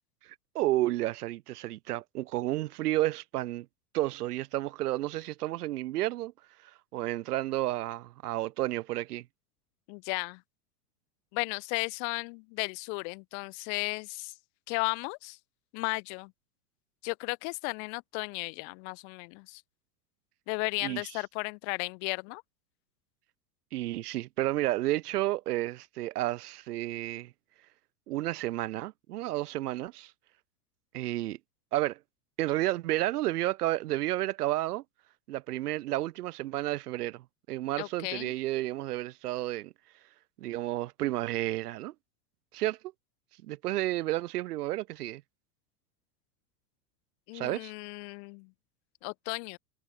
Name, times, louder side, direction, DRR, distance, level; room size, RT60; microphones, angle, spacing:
voice 1, 0.2-3.7 3.9-6.3 6.6-9.3 20.8-21.0 23.7-27.3 28.1-30.1 30.9-31.4 31.7-32.0 32.4-34.8 35.3-39.7 40.4-41.9 42.5-42.8 43.4-45.2 47.3-47.7, right 16 dB, 75° right, 0.7 m, -31 dB
voice 2, 9.9-10.4 11.3-14.3 14.7-15.4 15.7-16.3 17.0-19.6 20.5-22.4 37.8-38.3 47.3-48.5 49.0-49.6, left 40 dB or more, 45° left, 1.1 m, -35 dB
hypercardioid pair, 105°, 47 cm